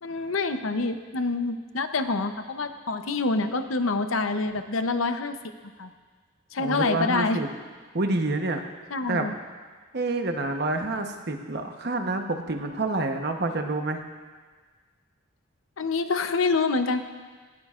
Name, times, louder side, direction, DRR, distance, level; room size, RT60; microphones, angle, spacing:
voice 1, 0.0-5.4 5.8-5.9 6.5-7.4 8.9-9.3 15.8-17.0, left 3 dB, 85° left, 8 dB, 0.8 m, -26 dB
voice 2, 6.6-7.5 7.9-8.6 9.1-9.3 9.9-14.0, right 2 dB, 55° right, 4 dB, 1.0 m, -28 dB
18.5 x 16.0 x 2.5 m, 1.5 s
head